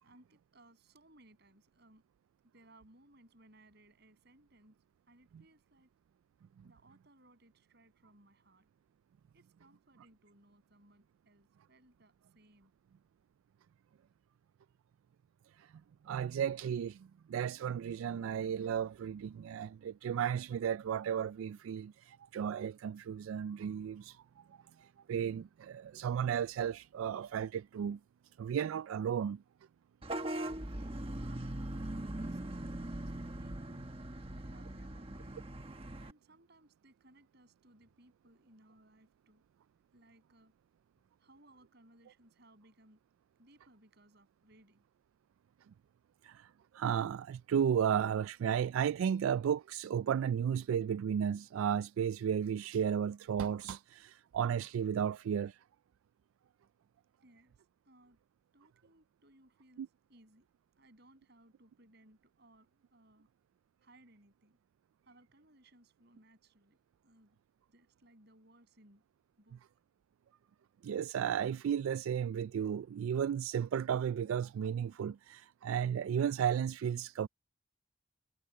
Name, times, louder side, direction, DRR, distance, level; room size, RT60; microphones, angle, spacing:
voice 1, 0.0-2.0 2.5-4.8 5.1-5.9 6.6-8.7 9.3-12.7 30.8-35.3 36.0-39.4 39.9-40.5 41.2-43.0 43.4-44.8 57.2-58.2 58.5-60.5 60.8-63.3 63.8-64.6 65.0-66.8 67.0-67.4 67.7-69.0 69.4-69.6, right 1 dB, 55° right, 7.8 m, -64 dB
voice 2, 16.0-24.2 24.8-28.0 28.4-29.4 46.2-55.6 59.8-59.9 70.8-77.3, right 8 dB, 85° right, 0.3 m, -34 dB
Vehicle horn car horn honking / Bus, 30.0-36.1, right 1 dB, 30° right, 1.3 m, -40 dB
head